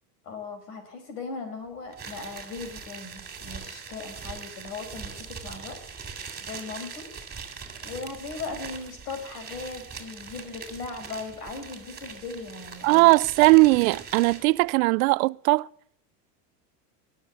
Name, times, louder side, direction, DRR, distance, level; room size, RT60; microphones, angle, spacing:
voice 1, 0.2-5.8 6.5-7.1 7.8-13.1, left 4 dB, 75° left, 5.3 m, -38 dB
sound 1, 1.9-14.6, right 5 dB, 20° right, 3.0 m, -41 dB
voice 2, 12.8-15.7, right 24 dB, 65° right, 0.5 m, -19 dB
20.0 x 7.3 x 9.7 m
hypercardioid pair, 95°, 47 cm